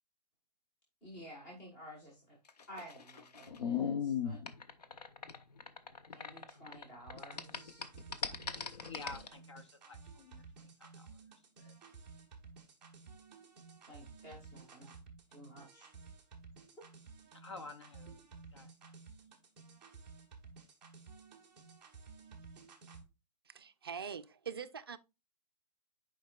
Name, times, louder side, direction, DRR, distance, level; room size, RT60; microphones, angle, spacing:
voice 1, 1.0-2.4 2.7-4.4 6.1-7.8 13.9-14.9 15.3-15.9, equal, 15° left, 1.4 m, -52 dB
sound 1, 2.5-6.8 7.1-9.3, left 7 dB, 70° left, 0.9 m, -38 dB
sound 2, 7.1-23.0, right 4 dB, 5° right, 0.7 m, -55 dB
voice 2, 8.8-11.2 11.6-11.7 17.3-18.2 18.5-18.7, left 3 dB, 45° left, 0.6 m, -50 dB
voice 3, 23.5-25.0, right 7 dB, 35° right, 0.4 m, -43 dB
9.3 x 5.1 x 2.3 m
hypercardioid pair, 175°, 21 cm